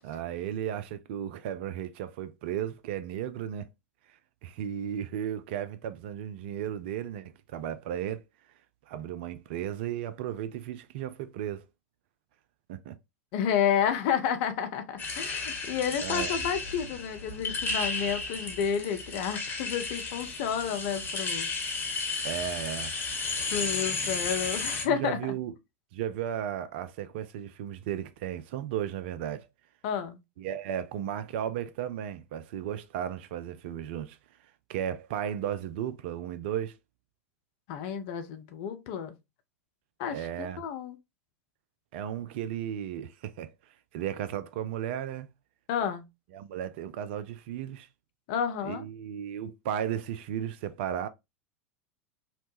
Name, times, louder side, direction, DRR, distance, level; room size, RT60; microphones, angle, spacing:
voice 1, 0.0-3.7 4.4-8.2 8.9-11.6 12.7-13.0 16.0-16.4 22.2-22.9 24.8-25.5 25.9-29.5 30.4-34.2 34.7-36.8 40.1-40.6 41.9-43.5 43.9-45.3 46.3-47.9 48.6-51.1, right 10 dB, 50° right, 0.3 m, -35 dB
voice 2, 13.3-21.5 23.5-25.2 29.8-30.2 37.7-39.1 40.0-41.0 45.7-46.1 48.3-48.8, left 8 dB, 45° left, 0.5 m, -30 dB
sound 1, 15.0-24.8, left 3 dB, 25° left, 1.0 m, -33 dB
2.8 x 2.1 x 3.0 m
figure-of-eight pair, 85°, 7 cm